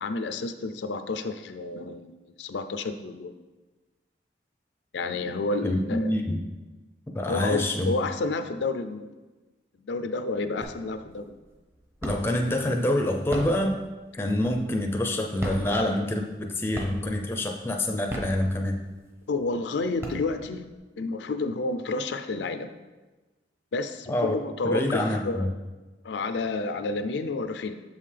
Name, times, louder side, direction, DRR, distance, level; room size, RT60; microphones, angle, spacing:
voice 1, 0.0-3.4 4.9-6.1 7.3-9.1 9.8-11.4 19.3-20.6 21.0-22.7 23.7-25.5 26.0-27.7, left 3 dB, 85° left, 9 dB, 0.4 m, -30 dB
voice 2, 5.6-6.4 7.1-7.9 12.0-13.8 14.1-18.8 24.1-24.3 24.6-25.5, left 1 dB, 15° left, 3 dB, 0.5 m, -26 dB
sound 1, 10.6-11.1 11.5-12.5 13.1-14.9 15.3-16.4 16.7-17.3 17.9-19.0 19.5-19.6 19.8-20.7, equal, 15° right, 0.8 m, -36 dB
7.2 x 5.5 x 3.3 m, 1.2 s
head